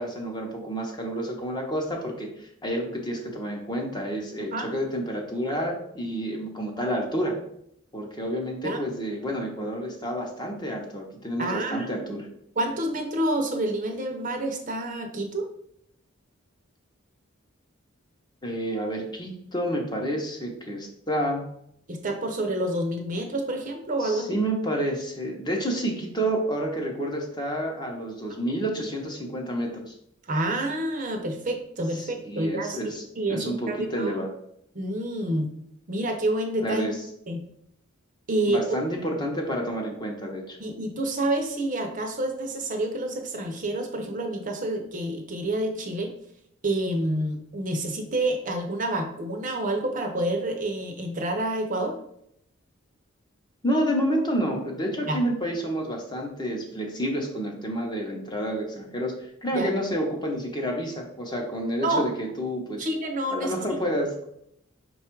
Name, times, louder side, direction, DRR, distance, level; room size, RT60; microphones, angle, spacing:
voice 1, 0.0-7.3 7.9-12.2 18.4-21.4 24.0-29.9 31.9-33.0 33.3-34.3 36.6-37.0 38.5-40.6 53.6-62.8 63.3-64.1, equal, 20° left, 1 dB, 0.7 m, -29 dB
voice 2, 11.4-12.0 12.6-15.5 21.9-24.4 30.3-34.1 34.7-35.5 35.9-36.9 37.3-37.4 38.3-38.8 40.6-46.1 46.6-52.0 55.1-55.2 59.5-59.7 61.8-62.1 62.8-63.5, right 1 dB, 40° right, 3 dB, 0.6 m, -28 dB
5.1 x 2.3 x 4.4 m, 0.74 s
head